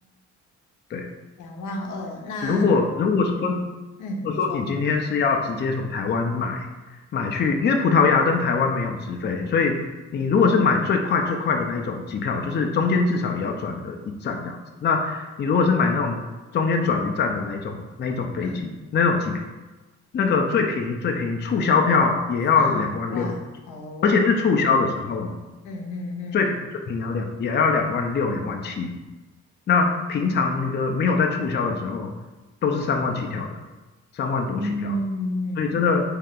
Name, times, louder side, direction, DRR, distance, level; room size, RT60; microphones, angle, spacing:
voice 1, 1.4-2.8 3.4-3.5 4.0-4.7 18.4-18.7 22.6-24.2 25.6-26.5 34.5-35.8, left 1 dB, 80° left, 2 dB, 0.7 m, -32 dB
voice 2, 2.4-3.6 4.2-6.7 7.1-9.9 10.1-16.2 16.5-19.4 20.1-23.3 24.0-25.4 26.3-26.5 26.9-28.9 29.7-32.1 32.6-33.6 34.1-34.9 35.6-36.0, left 4 dB, 35° left, 3 dB, 0.5 m, -23 dB
3.1 x 2.8 x 3.7 m, 1.2 s
cardioid pair, 90°, 30 cm